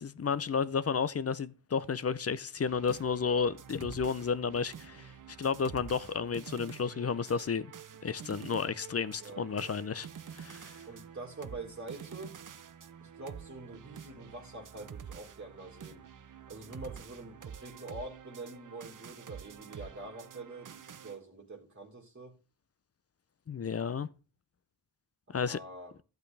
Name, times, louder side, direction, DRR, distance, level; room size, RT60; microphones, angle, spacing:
voice 1, 0.0-5.1 5.4-7.7 8.0-10.8 23.5-24.1 25.3-25.6, left 6 dB, 30° left, 0.5 m, -32 dB
sound 1, 2.6-21.2, right 8 dB, 40° right, 0.7 m, -48 dB
voice 2, 9.0-9.7 10.9-12.4 13.0-16.0 16.5-22.4 25.3-25.9, right 2 dB, 25° right, 1.9 m, -45 dB
13.0 x 8.1 x 3.3 m
cardioid pair, 75°, 48 cm